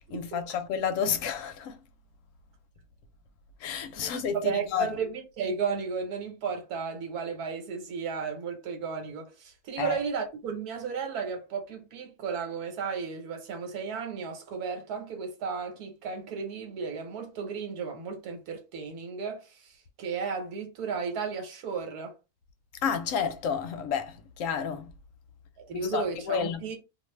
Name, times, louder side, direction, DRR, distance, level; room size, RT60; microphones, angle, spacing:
voice 1, 0.0-1.8 3.6-4.9 9.8-10.0 22.8-24.9 25.7-26.6, left 7 dB, 70° left, 0.9 m, -30 dB
voice 2, 4.0-22.1 25.6-26.7, right 5 dB, 85° right, 1.3 m, -34 dB
2.5 x 2.4 x 3.1 m
omnidirectional pair, 1.6 m